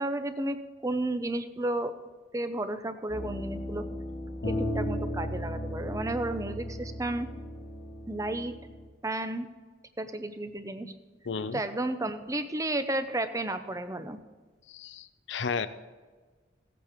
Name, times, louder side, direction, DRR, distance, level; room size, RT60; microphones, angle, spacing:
voice 1, 0.0-1.9 2.3-3.8 4.4-7.3 8.1-8.5 9.0-9.5 10.0-10.9 11.5-14.2, right 1 dB, 15° right, 10 dB, 0.6 m, -32 dB
sound 1, 3.1-8.9, left 1 dB, 50° left, 1.3 m, -35 dB
voice 2, 11.3-11.6 14.7-15.7, left 5 dB, 75° left, 12 dB, 0.6 m, -33 dB
16.5 x 8.5 x 3.6 m, 1.4 s
head